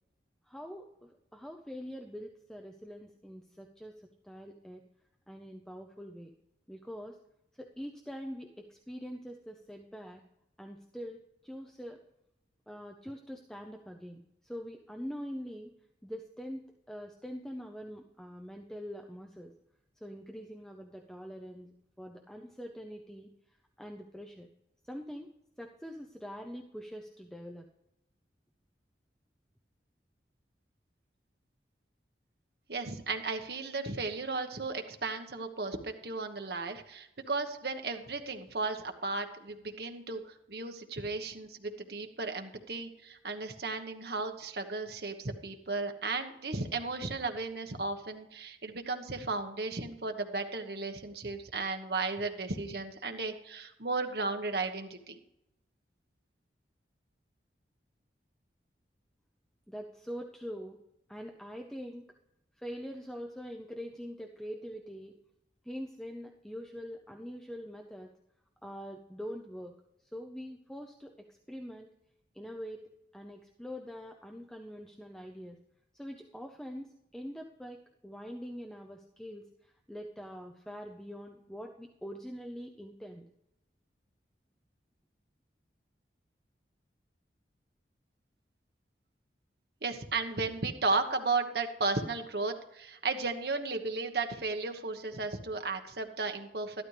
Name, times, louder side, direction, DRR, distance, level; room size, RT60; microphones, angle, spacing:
voice 1, 0.5-4.8 5.3-6.3 6.7-7.2 7.6-10.2 10.6-12.0 12.7-15.7 16.0-19.5 20.0-24.5 24.8-25.3 25.6-27.7 59.7-60.8 61.1-62.1 62.6-65.2 65.6-68.1 68.6-69.7 70.0-71.9 72.3-75.6 75.9-83.3, equal, 5° left, 2 dB, 0.6 m, -44 dB
voice 2, 32.7-55.2 89.8-96.8, right 3 dB, 60° right, 5 dB, 1.2 m, -35 dB
12.5 x 12.0 x 3.3 m, 0.84 s
head